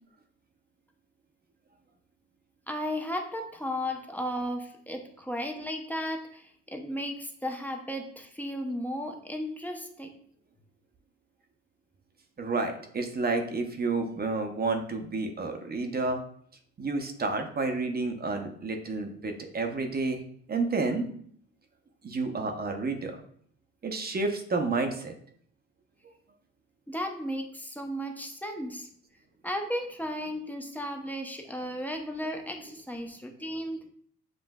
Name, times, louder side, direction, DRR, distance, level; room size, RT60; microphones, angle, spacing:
voice 1, 2.7-10.1 26.9-28.9 29.4-33.9, equal, 5° left, 3 dB, 0.6 m, -35 dB
voice 2, 12.4-16.2 16.8-20.2 20.5-21.1 22.0-23.2 23.8-25.1, right 3 dB, 30° right, 5 dB, 0.7 m, -30 dB
7.5 x 2.5 x 2.3 m, 0.62 s
cardioid pair, 90°, 30 cm